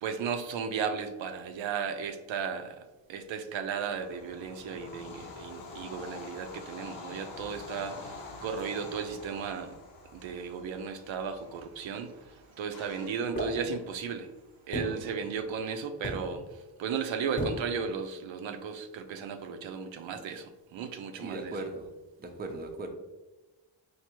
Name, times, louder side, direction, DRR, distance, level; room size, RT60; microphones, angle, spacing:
voice 1, 0.0-9.8 10.1-14.3 14.7-21.6, right 6 dB, 75° right, 7 dB, 0.6 m, -35 dB
Bird vocalization bird call bird song / Train, 3.9-15.1, left 3 dB, 85° left, 0.8 m, -47 dB
sound 1, 12.7-13.8, left 5 dB, 55° left, 0.7 m, -54 dB
sound 2, 13.4-14.1 14.7-15.8 16.0-16.6 17.4-17.9, equal, 20° left, 0.7 m, -36 dB
voice 2, 21.2-21.9 22.2-22.9, right 2 dB, 20° right, 4 dB, 0.5 m, -38 dB
4.6 x 2.6 x 2.9 m, 1.1 s
cardioid pair, 110°, 46 cm